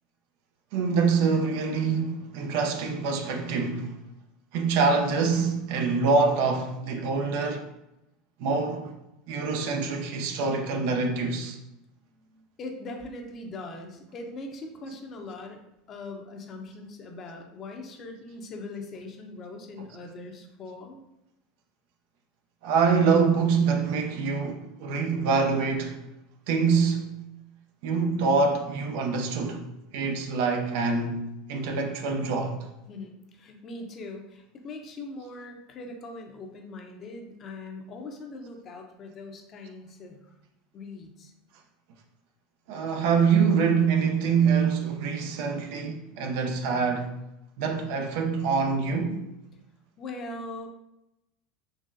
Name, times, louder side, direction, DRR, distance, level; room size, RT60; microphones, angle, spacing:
voice 1, 0.7-3.9 4.5-7.7 8.4-9.0 9.3-11.6 22.6-26.0 26.5-27.2 27.8-29.7 29.9-32.6 42.7-47.1 47.6-49.2, right 5 dB, 70° right, 0.6 m, -25 dB
voice 2, 12.1-15.6 15.9-21.0 32.9-40.3 40.7-41.3 50.0-50.7, left 2 dB, 40° left, 0.7 m, -41 dB
4.0 x 3.0 x 2.6 m
supercardioid pair, 100°, 0 cm